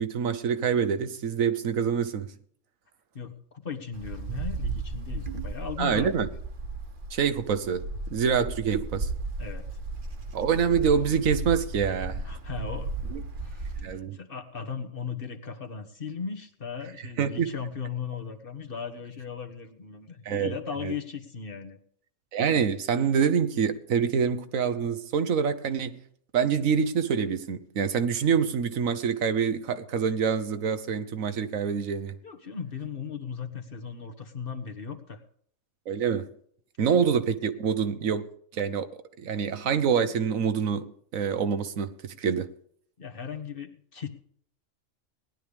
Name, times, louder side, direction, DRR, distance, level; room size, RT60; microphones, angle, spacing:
voice 1, 0.0-2.3 5.8-6.3 7.1-7.8 8.1-9.1 10.3-12.2 13.1-13.2 13.8-14.2 17.2-17.5 20.2-20.5 20.8-20.9 22.3-26.0 26.3-32.1 35.9-36.3 36.8-38.2 38.5-38.9 39.2-40.9 41.1-42.5, right 7 dB, 85° right, 1.4 m, -26 dB
voice 2, 3.1-6.1 9.4-9.6 12.2-12.9 13.4-13.7 14.1-21.8 32.2-35.2 43.0-44.1, left 6 dB, 45° left, 1.4 m, -37 dB
Wind, 3.9-13.9, right 3 dB, 40° right, 1.3 m, -35 dB
18.5 x 11.5 x 3.5 m
omnidirectional pair, 1.4 m